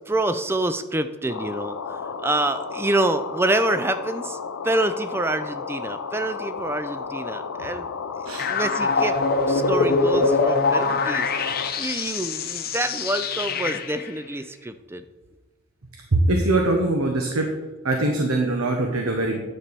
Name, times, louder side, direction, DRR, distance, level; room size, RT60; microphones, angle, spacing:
voice 1, 0.1-4.4 4.6-7.9 8.3-9.2 9.5-11.3 11.8-15.0, right 1 dB, 10° right, 11 dB, 0.3 m, -26 dB
sound 1, 1.3-11.7, left 5 dB, 90° left, 0.6 m, -33 dB
sound 2, 8.4-14.1, left 3 dB, 45° left, 0.8 m, -23 dB
voice 2, 16.1-17.5 17.8-19.4, right 2 dB, 85° right, 2 dB, 1.1 m, -22 dB
10.0 x 4.5 x 6.8 m, 1.2 s
head